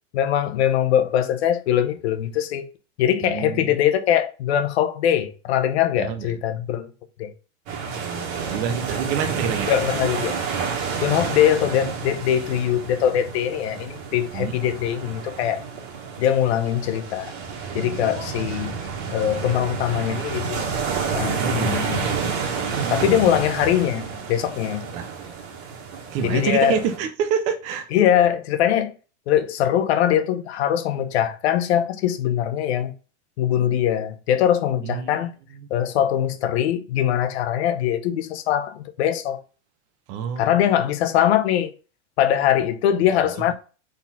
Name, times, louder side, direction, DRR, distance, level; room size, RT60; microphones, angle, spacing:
voice 1, 0.1-2.7 3.0-6.9 7.2-7.3 9.7-10.4 11.0-15.6 16.2-17.3 17.7-18.7 19.1-20.7 21.1-22.1 22.9-24.8 26.2-26.8 27.9-28.9 29.3-32.9 33.4-35.3 35.7-39.4 40.4-41.7 42.2-43.5, left 10 dB, 60° left, 0.9 m, -22 dB
voice 2, 3.2-3.7 6.0-6.3 7.9-9.7 14.3-14.5 21.4-21.9 22.8-23.4 24.9-25.1 26.1-27.9 34.8-35.2 40.1-40.6, right 7 dB, 20° right, 0.4 m, -27 dB
sound 1, 7.7-27.0, right 5 dB, 45° right, 1.6 m, -30 dB
4.3 x 4.0 x 5.5 m
supercardioid pair, 160°, 37 cm